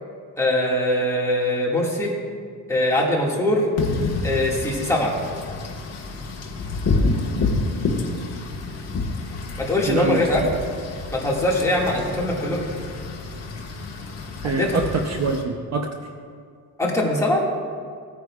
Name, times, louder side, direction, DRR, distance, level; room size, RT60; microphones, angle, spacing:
voice 1, 0.4-2.1 2.7-3.7 4.2-5.1 9.6-10.4 11.1-12.6 14.4-14.8 16.8-17.4, left 1 dB, 5° left, -4 dB, 2.0 m, -22 dB
Wind / Rain, 3.8-15.4, left 3 dB, 40° left, 1.5 m, -28 dB
voice 2, 9.9-10.5 14.4-15.9, right 4 dB, 45° right, 4 dB, 0.7 m, -25 dB
18.0 x 9.2 x 2.4 m, 2.1 s
cardioid pair, 135°, 38 cm